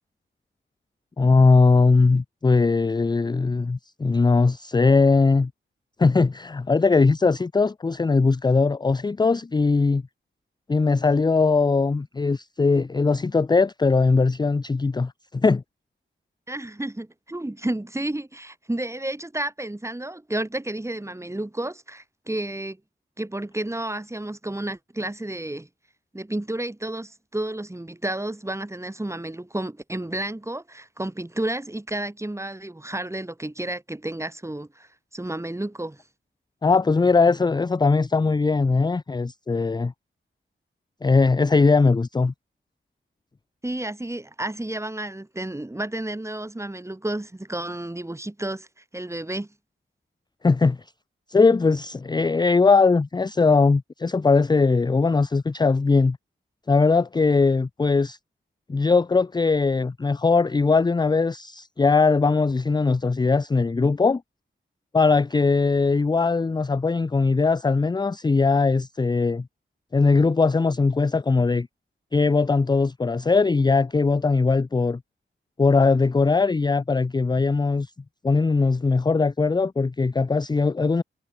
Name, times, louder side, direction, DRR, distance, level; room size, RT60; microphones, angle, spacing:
voice 1, 1.2-5.5 6.0-10.0 10.7-15.6 36.6-39.9 41.0-42.3 50.4-50.8 51.3-56.2 56.7-58.2 58.7-64.2 64.9-69.5 69.9-71.7 72.1-75.0 75.6-77.9 78.2-81.0, left 4 dB, 20° left, 0.4 m, -20 dB
voice 2, 16.5-22.8 23.2-25.7 26.1-36.0 43.6-48.7 48.9-49.5, right 1 dB, 15° right, 6.7 m, -31 dB
wide cardioid pair, 150°, 21 cm